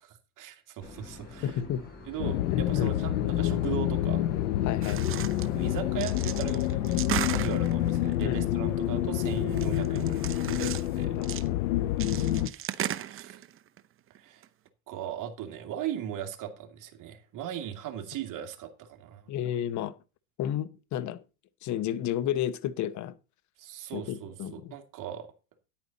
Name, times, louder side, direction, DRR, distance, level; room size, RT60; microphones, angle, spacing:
voice 1, 0.0-1.6 2.1-4.2 4.7-4.8 5.5-11.1 12.1-12.7 13.0-13.4 14.2-14.4 14.9-19.2 23.6-25.3, right 10 dB, 50° right, 2.3 m, -38 dB
Boat Water vehicle / Engine, 0.8-6.4, left 3 dB, 25° left, 7.2 m, -47 dB
voice 2, 1.4-1.8 2.5-2.9 4.6-5.0 8.2-8.5 11.2-11.6 19.3-19.9 20.4-21.2 21.6-23.1 23.9-24.7, left 10 dB, 45° left, 0.9 m, -32 dB
sound 1, 2.2-12.5, left 13 dB, 80° left, 0.8 m, -28 dB
sound 2, 4.8-5.5 5.8-8.2 9.2-11.0 11.2-11.5 12.0-13.8 14.2-14.3 14.4-14.5, right 11 dB, 30° right, 0.7 m, -36 dB
10.0 x 8.7 x 4.1 m
supercardioid pair, 105°, 41 cm